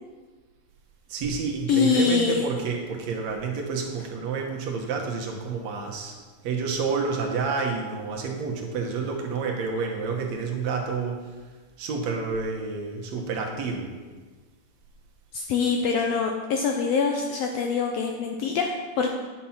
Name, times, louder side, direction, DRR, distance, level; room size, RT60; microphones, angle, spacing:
voice 1, 1.1-6.2 6.4-11.2 11.8-13.9, right 5 dB, 65° right, 1 dB, 2.2 m, -29 dB
voice 2, 1.7-2.4 15.3-19.1, left 5 dB, 75° left, 2 dB, 1.5 m, -24 dB
9.8 x 6.0 x 5.7 m, 1.4 s
omnidirectional pair, 3.5 m